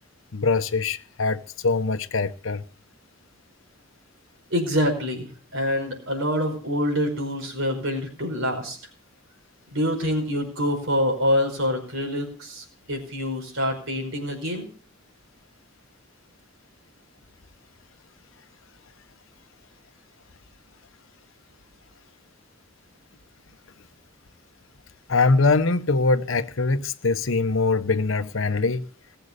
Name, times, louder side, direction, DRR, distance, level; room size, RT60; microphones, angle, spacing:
voice 1, 0.3-2.6 25.1-28.9, left 3 dB, 70° left, 0.9 m, -23 dB
voice 2, 4.5-8.8 9.7-14.7, equal, 65° right, 5.0 m, -26 dB
19.5 x 8.0 x 6.7 m
head